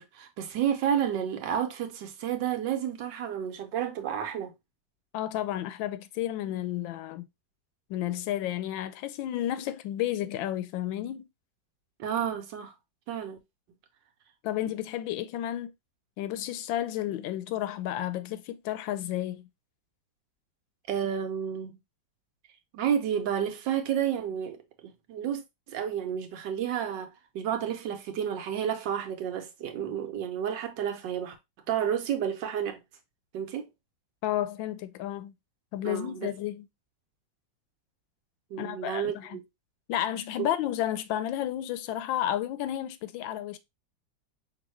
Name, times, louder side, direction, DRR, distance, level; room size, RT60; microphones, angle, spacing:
voice 1, 0.0-4.5 12.0-12.7 13.1-13.4 20.9-21.8 22.7-27.1 27.3-31.3 31.7-32.8 33.3-33.7 35.8-36.3 38.5-39.4 40.4-40.5, right 9 dB, 75° right, 1.4 m, -31 dB
voice 2, 5.1-7.2 7.9-11.3 14.4-15.7 16.2-19.5 34.2-35.3 35.7-36.7 38.6-39.4 39.9-43.6, left 12 dB, 90° left, 1.3 m, -32 dB
5.3 x 2.8 x 3.0 m
omnidirectional pair, 2.0 m